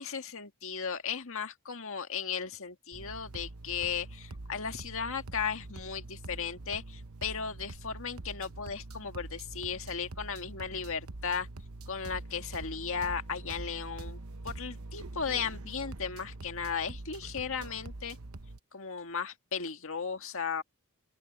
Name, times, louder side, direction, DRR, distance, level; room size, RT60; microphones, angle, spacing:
voice 1, 0.0-11.5 11.9-14.2 14.4-18.2 18.7-20.6, left 6 dB, 65° left, 1.8 m, -36 dB
sound 1, 2.9-18.6, right 2 dB, 70° right, 1.0 m, -44 dB
open air
head